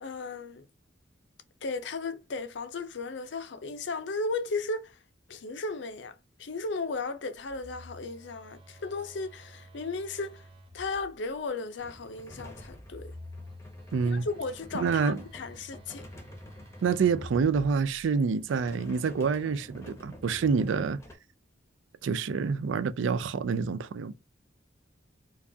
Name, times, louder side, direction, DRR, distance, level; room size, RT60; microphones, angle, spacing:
voice 1, 0.0-0.6 1.6-5.0 5.3-10.5 10.7-13.1 14.0-16.1, left 3 dB, 65° left, 0.5 m, -35 dB
Telephone, 7.4-11.4 12.5-18.2, left 1 dB, 25° right, 0.6 m, -50 dB
sound 1, 11.8-17.9 18.3-21.1, left 1 dB, 15° left, 0.7 m, -48 dB
voice 2, 13.9-14.3 14.7-15.2 16.8-21.0 22.0-24.1, right 5 dB, 75° right, 0.4 m, -27 dB
4.6 x 2.3 x 2.6 m
head